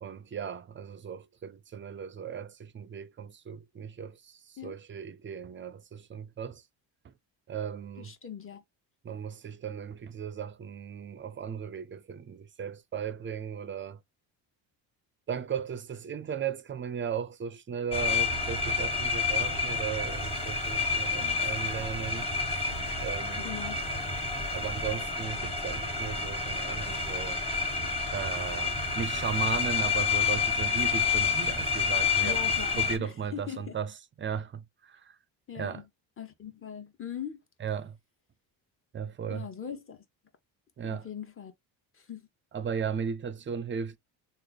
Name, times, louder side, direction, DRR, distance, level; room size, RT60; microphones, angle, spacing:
voice 1, 0.0-6.7 7.0-7.1 7.5-8.1 9.0-14.0 15.3-22.3 23.0-23.6 24.5-27.4 28.1-33.9 34.2-35.2 35.5-35.8 37.6-38.0 38.9-39.5 40.8-41.1 42.5-44.0, right 7 dB, 25° right, 0.4 m, -36 dB
voice 2, 8.0-8.6 21.2-21.4 23.4-23.9 32.2-33.8 35.5-35.9 36.2-37.4 39.3-40.0 40.8-41.5 41.9-42.3, left 8 dB, 30° left, 0.9 m, -41 dB
sound 1, 17.9-33.0, left 5 dB, 15° left, 1.3 m, -29 dB
3.2 x 2.0 x 3.9 m
supercardioid pair, 75°, 46 cm